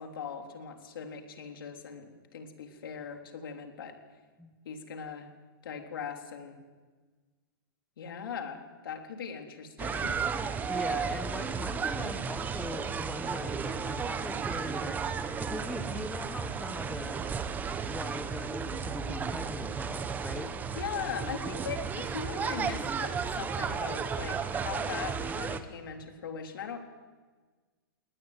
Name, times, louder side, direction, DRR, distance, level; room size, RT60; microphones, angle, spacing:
voice 1, 0.0-4.0 4.7-5.3 5.6-6.6 8.0-10.2 20.8-26.8, left 6 dB, 80° left, 4 dB, 3.6 m, -40 dB
sound 1, 9.8-25.6, right 6 dB, 15° right, 1.2 m, -34 dB
voice 2, 10.6-17.2 17.9-20.8, left 2 dB, 5° left, 7 dB, 1.3 m, -41 dB
20.0 x 19.0 x 9.2 m, 1.4 s
hypercardioid pair, 145°, 12 cm